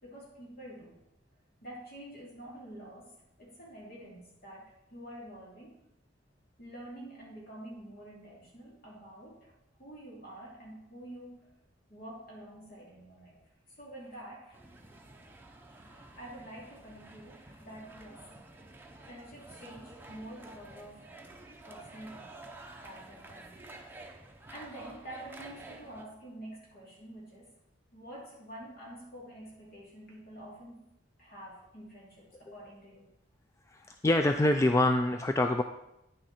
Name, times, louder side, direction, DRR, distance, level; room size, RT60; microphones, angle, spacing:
voice 1, 0.0-1.0 1.6-3.1 3.4-5.7 6.6-9.5 9.8-11.5 11.9-13.4 13.8-14.6 15.7-18.2 19.0-21.1 21.6-22.4 22.8-23.6 24.5-27.5 27.9-30.8 31.2-33.1, right 1 dB, 50° left, -4 dB, 3.1 m, -48 dB
sound 1, 14.5-26.0, right 2 dB, 10° right, 0.8 m, -50 dB
voice 2, 33.7-35.6, left 1 dB, 15° left, 5 dB, 0.3 m, -25 dB
9.8 x 6.2 x 4.3 m, 0.85 s
head